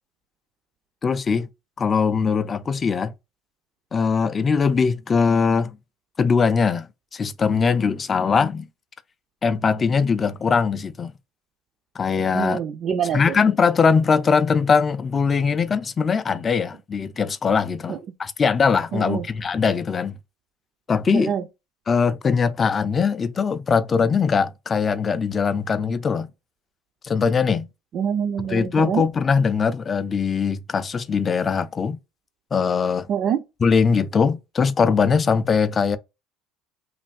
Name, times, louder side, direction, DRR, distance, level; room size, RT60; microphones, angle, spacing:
voice 1, 1.0-1.5 1.8-3.1 3.9-5.8 6.2-8.7 9.4-11.1 12.0-12.6 13.1-20.2 20.9-21.3 21.9-26.3 27.0-27.7 28.5-32.0 32.5-33.1 33.6-36.0, left 5 dB, 25° left, 0.3 m, -21 dB
voice 2, 12.3-13.2 17.9-18.0 18.9-19.2 21.1-21.4 27.9-29.0 33.1-33.4, right 8 dB, 45° right, 0.4 m, -25 dB
3.2 x 2.5 x 2.4 m
supercardioid pair, 115°, 0 cm